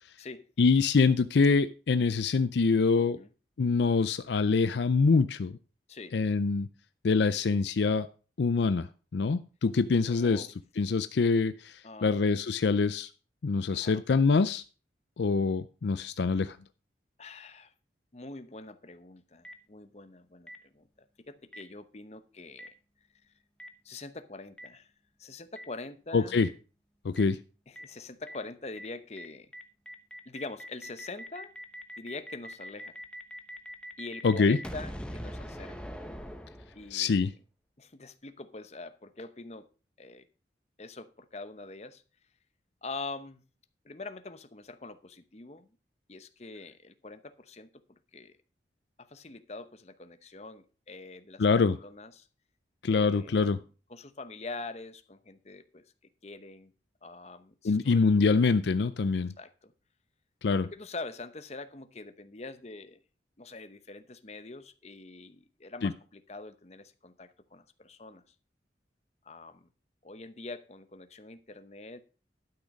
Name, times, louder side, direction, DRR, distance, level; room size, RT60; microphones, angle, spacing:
voice 1, 0.6-3.2 3.6-5.6 6.1-6.7 7.0-8.1 8.4-10.5 10.8-13.1 13.4-14.6 15.2-16.6 26.1-26.5 27.0-27.4 34.2-34.6 36.9-37.3 51.4-51.8 52.8-53.6 57.6-59.3 60.4-60.7 65.8-65.9, left 4 dB, 70° left, 13 dB, 0.4 m, -25 dB
voice 2, 10.1-10.5 11.8-12.2 13.7-14.0 17.2-17.7 18.1-20.9 21.3-22.7 23.8-24.9 25.2-26.4 27.7-29.5 30.3-31.5 32.0-33.0 34.0-35.7 36.7-37.2 37.8-39.7 40.0-40.3 40.8-42.0 42.8-43.4 43.8-45.7 46.1-47.7 48.1-48.4 49.0-51.4 51.8-52.3 52.9-53.6 53.9-55.9 56.2-56.7 57.0-58.3 59.4-59.7 60.7-63.0 63.4-68.3 69.2-69.7 70.0-72.0, left 3 dB, 35° left, 11 dB, 0.8 m, -44 dB
Boom, 19.4-19.5 20.5-20.6 21.5-21.6 22.6-22.7 23.6-23.7 24.6-24.7 25.6-25.7 26.4-26.5 27.2-27.3 27.8-27.9 28.3-28.4 28.8-28.9 29.2-29.3 29.5-37.1, equal, 5° left, 0.8 m, -42 dB
12.0 x 6.3 x 5.3 m, 0.36 s
head